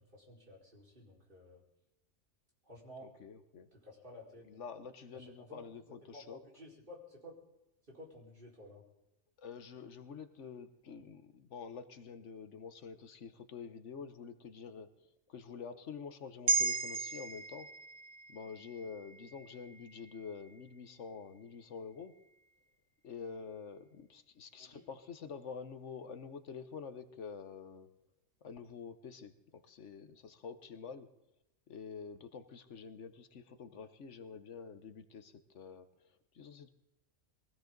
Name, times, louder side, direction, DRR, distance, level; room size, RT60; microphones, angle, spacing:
voice 1, 0.0-1.6 2.6-3.1 3.7-4.4 5.1-7.4 7.9-8.8 24.5-24.8, left 1 dB, 45° right, -3 dB, 5.0 m, -53 dB
voice 2, 3.0-3.7 4.4-6.4 9.4-17.7 18.3-22.2 23.0-27.9 28.4-31.1 31.7-36.7, left 6 dB, 80° left, 9 dB, 1.3 m, -48 dB
sound 1, 16.5-21.0 21.4-21.5, right 4 dB, 70° right, 1.3 m, -37 dB
23.0 x 15.5 x 3.9 m, 0.89 s
omnidirectional pair, 1.2 m